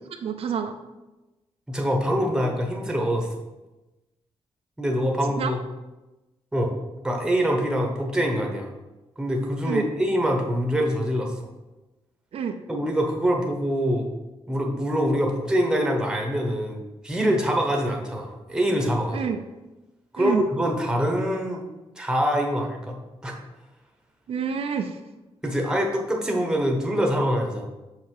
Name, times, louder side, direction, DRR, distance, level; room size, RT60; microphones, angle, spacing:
voice 1, 0.0-0.8 5.4-5.5 9.6-9.9 12.3-12.6 19.1-19.4 20.2-20.4 24.3-25.0, right 6 dB, 70° right, 6 dB, 0.6 m, -28 dB
voice 2, 1.7-3.3 4.8-5.6 6.5-6.7 7.0-8.7 9.2-11.5 12.7-14.1 14.5-19.3 20.1-21.6 22.0-23.3 25.4-27.6, equal, 5° right, 1 dB, 1.1 m, -24 dB
6.5 x 5.7 x 4.8 m, 1.1 s
wide cardioid pair, 160°, 11 cm